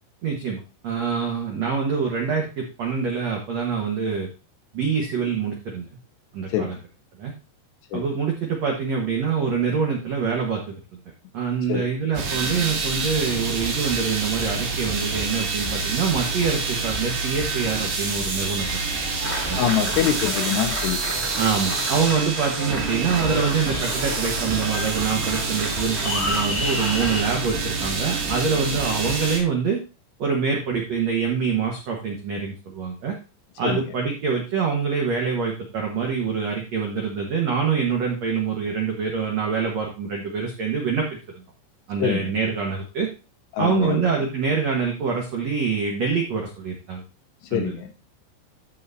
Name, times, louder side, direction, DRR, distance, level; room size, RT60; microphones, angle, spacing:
voice 1, 0.2-4.3 4.7-5.9 6.3-6.8 7.2-7.3 7.9-10.8 11.3-18.8 19.5-19.9 21.4-29.8 30.2-33.1 33.6-41.1 41.9-43.1 43.6-47.0 47.5-47.7, right 6 dB, 85° right, 0 dB, 1.5 m, -25 dB
voice 2, 6.5-6.8 7.9-8.0 11.7-11.9 19.6-21.0 33.6-33.8 42.0-42.3 43.5-44.1 47.4-47.9, left 9 dB, 80° left, 7 dB, 2.6 m, -25 dB
sound 1, 12.1-29.4, right 3 dB, 60° right, 4.1 m, -27 dB
Applause, 19.2-27.2, left 1 dB, 5° left, 1.1 m, -31 dB
14.0 x 5.8 x 2.7 m, 0.32 s
omnidirectional pair, 5.3 m